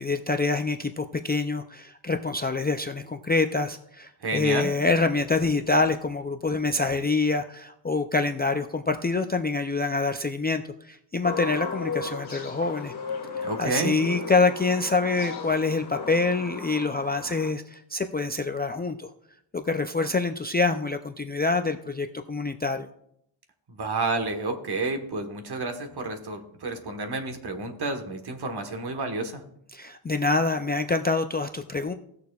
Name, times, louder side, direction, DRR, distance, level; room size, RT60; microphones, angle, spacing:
voice 1, 0.0-12.9 13.4-19.1 19.5-22.9 29.7-31.9, left 3 dB, 20° left, 5 dB, 0.3 m, -26 dB
voice 2, 4.2-4.7 13.4-14.0 23.7-29.4, right 3 dB, 50° right, 6 dB, 1.3 m, -30 dB
sound 1, 11.2-17.5, left 5 dB, 50° left, 1.8 m, -36 dB
17.5 x 6.7 x 2.3 m, 0.72 s
wide cardioid pair, 110°, 49 cm